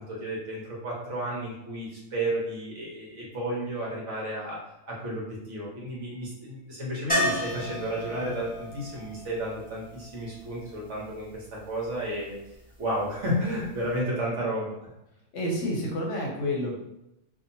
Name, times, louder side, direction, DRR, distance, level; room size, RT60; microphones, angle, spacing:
voice 1, 0.0-4.6 4.9-12.4 12.8-14.9, right 1 dB, 60° right, -4 dB, 1.2 m, -32 dB
sound 1, 7.1-11.0 13.6-13.7 14.0-14.1, equal, 10° left, 0.5 m, -32 dB
voice 2, 15.3-16.7, left 1 dB, 65° left, -2 dB, 0.9 m, -29 dB
2.8 x 2.5 x 2.6 m, 0.87 s
omnidirectional pair, 1.4 m